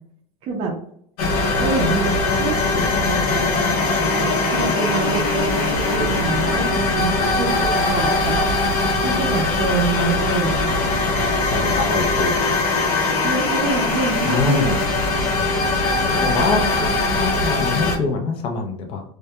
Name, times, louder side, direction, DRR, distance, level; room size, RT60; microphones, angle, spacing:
voice 1, 0.4-0.8 1.6-2.1 2.4-3.3 4.1-8.4 9.0-10.7 13.2-14.8 16.7-16.9, right 3 dB, 30° right, 1 dB, 0.5 m, -26 dB
sound 1, 1.2-18.0, left 3 dB, 80° left, 0.7 m, -21 dB
voice 2, 11.5-12.3 14.3-14.8 16.2-16.7 17.1-19.0, left 4 dB, 30° left, 3 dB, 0.4 m, -24 dB
2.2 x 2.1 x 2.7 m, 0.67 s
supercardioid pair, 150°, 18 cm